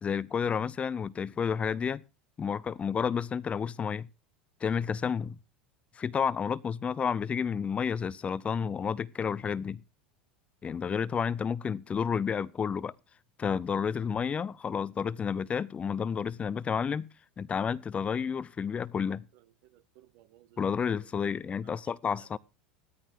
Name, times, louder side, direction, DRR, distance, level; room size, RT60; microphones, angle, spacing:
voice 1, 0.0-2.0 2.4-4.1 4.6-5.4 6.0-9.8 10.6-12.9 13.4-17.1 17.4-19.2 20.6-22.4, left 7 dB, 25° left, 0.6 m, -31 dB
voice 2, 19.3-20.6 21.0-21.8 22.1-22.4, right 14 dB, 55° right, 0.9 m, -61 dB
15.5 x 13.5 x 2.9 m
figure-of-eight pair, 80°, 5 cm